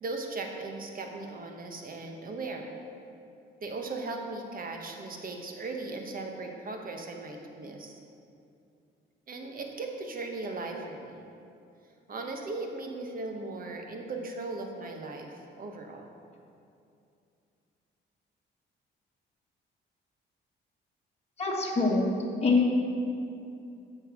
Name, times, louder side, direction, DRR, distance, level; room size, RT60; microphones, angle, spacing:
voice 1, 0.0-2.7 3.6-8.0 9.3-11.3 12.1-16.1, right 3 dB, 45° right, 3 dB, 1.2 m, -38 dB
voice 2, 21.4-22.1 22.4-22.7, left 3 dB, 30° left, -2 dB, 1.3 m, -24 dB
8.0 x 5.6 x 6.1 m, 2.6 s
cardioid pair, 90°, 20 cm